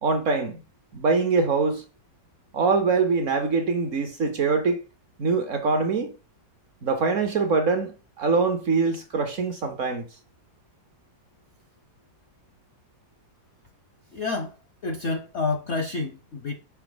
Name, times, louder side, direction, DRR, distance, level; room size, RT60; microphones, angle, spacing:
voice 1, 0.0-0.6 0.9-1.8 2.5-4.8 5.2-6.1 6.8-10.1, right 4 dB, 55° right, 0.9 m, -23 dB
voice 2, 14.1-14.6 14.8-16.5, left 3 dB, 65° left, 0.7 m, -29 dB
5.8 x 5.2 x 3.8 m
omnidirectional pair, 1.9 m